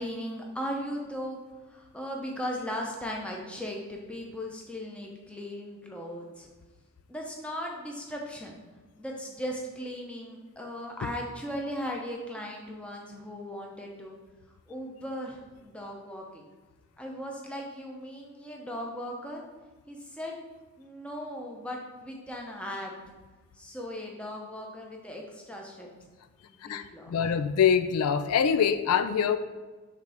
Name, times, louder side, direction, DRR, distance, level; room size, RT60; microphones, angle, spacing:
voice 1, 0.0-1.4 1.7-6.5 7.1-8.6 9.0-14.2 14.7-16.5 17.0-19.4 19.9-20.4 20.8-22.9 23.5-25.9 26.5-27.2, equal, 5° left, -1 dB, 0.8 m, -37 dB
voice 2, 26.6-29.4, left 7 dB, 80° left, 11 dB, 0.3 m, -24 dB
6.6 x 3.3 x 4.9 m, 1.3 s
head